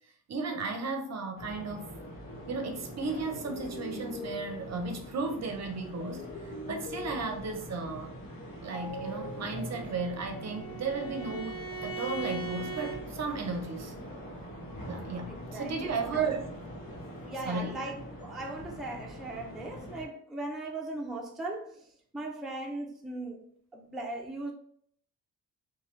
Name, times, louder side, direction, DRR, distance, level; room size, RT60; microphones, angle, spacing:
voice 1, 0.3-1.9 2.5-8.1 8.6-11.6 11.8-13.9 14.9-16.5 17.5-17.8, right 4 dB, 50° right, 0.6 m, -34 dB
sound 1, 1.4-20.0, equal, 70° left, 0.9 m, -44 dB
sound 2, 1.9-2.2 3.3-5.0 6.0-7.7 8.7-10.4, left 2 dB, 90° left, 0.6 m, -43 dB
Bowed string instrument, 9.5-13.0, right 4 dB, 25° left, 1.1 m, -40 dB
voice 2, 15.3-16.3 17.2-23.5 23.7-24.5, right 2 dB, ahead, 0.4 m, -39 dB
2.8 x 2.3 x 3.1 m
cardioid pair, 115°, 36 cm